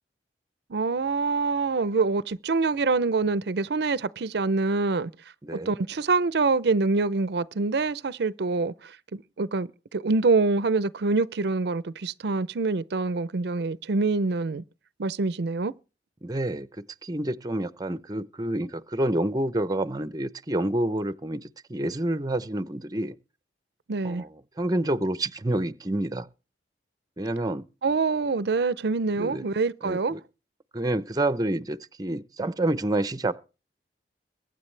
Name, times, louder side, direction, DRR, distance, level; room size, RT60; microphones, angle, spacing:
voice 1, 0.7-5.1 5.7-14.6 15.0-15.7 23.9-24.2 27.8-30.2, right 3 dB, 65° right, 0.5 m, -25 dB
voice 2, 5.4-5.7 16.2-23.2 24.0-24.3 24.6-26.3 27.2-27.6 29.2-29.5 29.8-30.2 30.7-33.3, right 1 dB, 20° right, 0.7 m, -28 dB
22.5 x 9.4 x 3.3 m
head